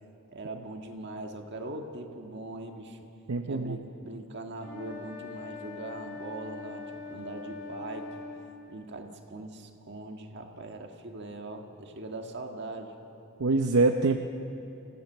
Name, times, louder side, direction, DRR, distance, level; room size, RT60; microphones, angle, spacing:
voice 1, 0.3-3.1 3.5-8.1 8.7-13.0, right 2 dB, 50° right, 3 dB, 1.7 m, -41 dB
voice 2, 3.3-3.8 13.4-14.2, right 3 dB, 75° right, 5 dB, 0.7 m, -24 dB
sound 1, 4.5-8.5, left 4 dB, 10° left, 5.7 m, -42 dB
26.0 x 16.5 x 7.3 m, 2.8 s
head